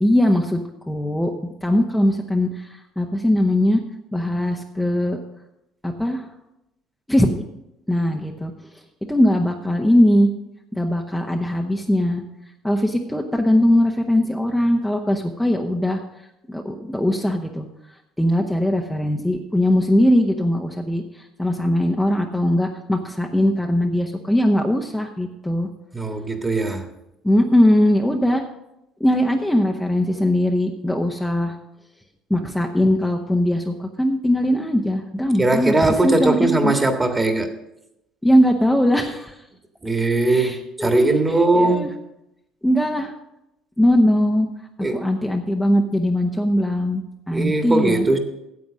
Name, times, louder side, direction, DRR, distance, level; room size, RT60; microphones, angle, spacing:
voice 1, 0.0-1.3 1.6-3.8 4.1-5.2 5.8-6.3 7.1-7.4 7.9-8.5 9.1-10.3 10.7-12.2 12.6-16.0 16.5-17.7 18.2-25.7 27.2-28.4 29.0-31.5 32.3-35.8 36.0-36.8 38.2-39.4 40.3-41.2 41.5-41.9 42.6-43.1 43.8-44.5 44.9-48.1, left 1 dB, 5° left, 1 dB, 1.0 m, -20 dB
voice 2, 25.9-26.8 35.4-37.5 39.8-41.9 44.8-45.0 47.3-48.2, right 2 dB, 20° right, 6 dB, 1.7 m, -20 dB
9.5 x 7.7 x 6.3 m, 0.88 s
supercardioid pair, 80°, 0 cm